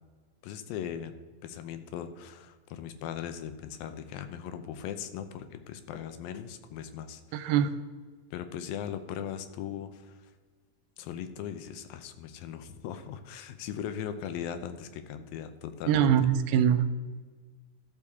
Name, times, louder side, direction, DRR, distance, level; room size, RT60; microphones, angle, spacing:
voice 1, 0.4-1.2 1.4-7.5 8.3-10.2 11.0-16.1, left 9 dB, 80° left, 9 dB, 2.4 m, -39 dB
voice 2, 7.3-7.7 15.9-17.1, right 9 dB, 85° right, 10 dB, 2.5 m, -24 dB
14.0 x 7.1 x 3.5 m, 1.4 s
omnidirectional pair, 4.2 m